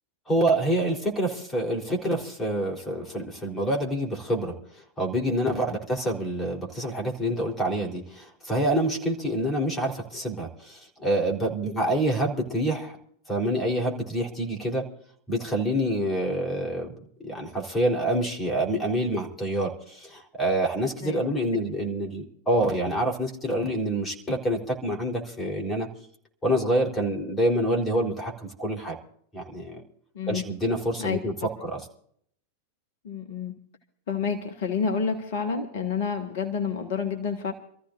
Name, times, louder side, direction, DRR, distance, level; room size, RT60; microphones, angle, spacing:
voice 1, 0.3-4.5 5.0-13.0 13.3-14.8 15.3-25.9 26.4-29.0 29.3-29.8 30.3-31.9, right 1 dB, 15° left, 1 dB, 3.9 m, -27 dB
voice 2, 33.0-33.5 34.1-37.5, left 6 dB, 55° left, 5 dB, 1.6 m, -29 dB
28.0 x 14.5 x 2.6 m, 0.64 s
figure-of-eight pair, 90°, 0 cm